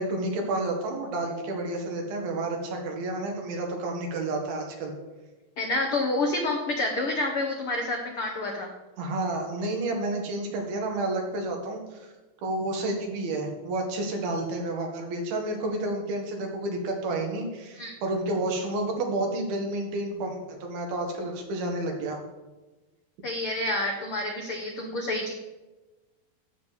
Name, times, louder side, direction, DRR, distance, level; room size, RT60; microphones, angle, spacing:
voice 1, 0.0-4.9 9.0-12.1 12.4-22.2, right 2 dB, 90° right, 1 dB, 3.7 m, -30 dB
voice 2, 5.6-8.7 17.7-17.9 23.2-25.3, left 2 dB, 85° left, 1 dB, 1.2 m, -28 dB
15.0 x 7.2 x 4.2 m, 1.2 s
omnidirectional pair, 4.2 m